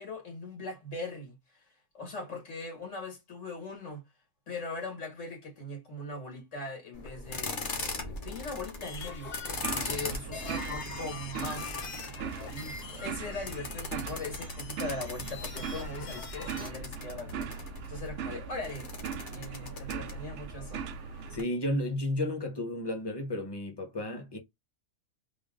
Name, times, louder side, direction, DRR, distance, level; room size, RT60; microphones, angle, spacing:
voice 1, 0.0-1.6 1.9-4.0 4.5-9.3 9.8-11.7 12.5-17.5 17.9-18.9 19.3-20.9, left 2 dB, 90° left, 2.2 m, -40 dB
sound 1, 6.9-21.4, left 3 dB, 45° left, 1.1 m, -41 dB
sound 2, 8.7-16.7, left 5 dB, 65° left, 1.3 m, -43 dB
sound 3, 9.5-21.4, right 7 dB, 80° right, 0.9 m, -40 dB
voice 2, 9.7-10.2 21.3-24.4, left 1 dB, 20° left, 1.0 m, -33 dB
3.7 x 2.3 x 3.6 m
omnidirectional pair, 1.2 m